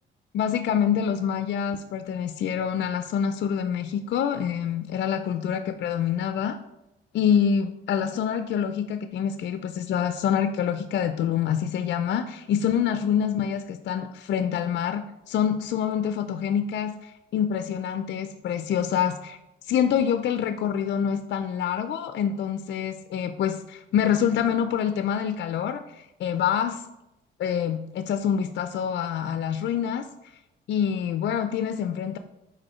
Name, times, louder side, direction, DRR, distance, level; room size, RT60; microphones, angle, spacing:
voice 1, 0.3-6.6 7.1-19.4 19.7-26.8 27.4-30.1 30.7-32.2, left 8 dB, 60° left, 8 dB, 0.4 m, -26 dB
5.2 x 4.2 x 4.3 m, 0.91 s
cardioid pair, 90°, 20 cm